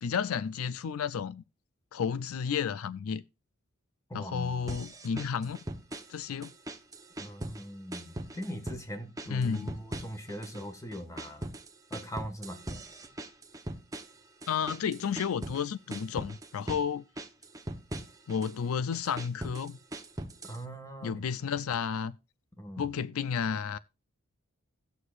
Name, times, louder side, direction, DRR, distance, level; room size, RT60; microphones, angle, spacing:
voice 1, 0.0-1.4 1.9-3.2 4.1-5.6 6.1-6.5 9.3-9.8 14.5-17.0 18.3-19.8 21.0-22.2 22.8-23.8, left 6 dB, 85° left, 0.4 m, -32 dB
voice 2, 4.1-4.7 7.2-11.5 11.9-12.6 20.4-21.3 22.6-22.9, equal, 15° left, 1.5 m, -41 dB
sound 1, 4.7-6.2 6.4-7.7 7.9-8.9 9.2-10.6 10.9-15.6 15.9-16.9 17.2-18.5 18.9-20.6, right 1 dB, 15° right, 0.8 m, -40 dB
18.0 x 6.5 x 2.4 m
head